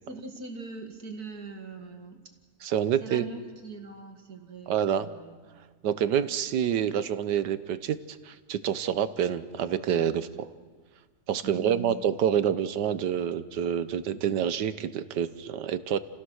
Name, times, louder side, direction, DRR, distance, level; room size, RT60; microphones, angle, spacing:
voice 1, 0.0-2.4 3.0-5.4 11.4-12.0, right 4 dB, 65° right, 4 dB, 2.6 m, -41 dB
voice 2, 2.6-3.2 4.7-5.1 5.8-10.5 11.3-16.0, right 9 dB, 85° right, 13 dB, 1.5 m, -27 dB
30.0 x 16.5 x 6.4 m, 1.5 s
omnidirectional pair, 1.8 m